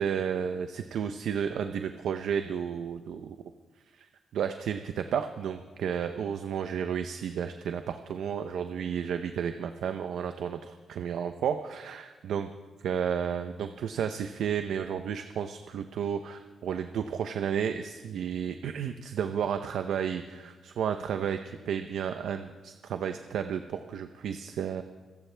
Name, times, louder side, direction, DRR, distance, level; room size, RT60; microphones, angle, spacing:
voice 1, 0.0-3.4 3.9-4.1 4.3-12.5 12.8-24.8, right 8 dB, 90° right, 8 dB, 0.7 m, -32 dB
26.0 x 15.5 x 3.4 m, 1.3 s
cardioid pair, 125°, 0 cm